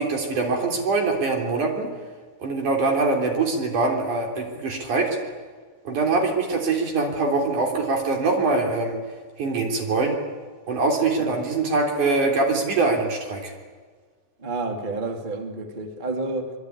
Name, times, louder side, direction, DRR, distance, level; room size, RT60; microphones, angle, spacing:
voice 1, 0.0-1.9 2.4-5.1 5.9-9.0 9.4-10.1 10.7-13.5, right 3 dB, 65° right, 1 dB, 5.0 m, -23 dB
voice 2, 14.4-16.5, right 2 dB, 20° right, 4 dB, 1.6 m, -30 dB
25.0 x 23.5 x 9.6 m, 1.5 s
omnidirectional pair, 3.8 m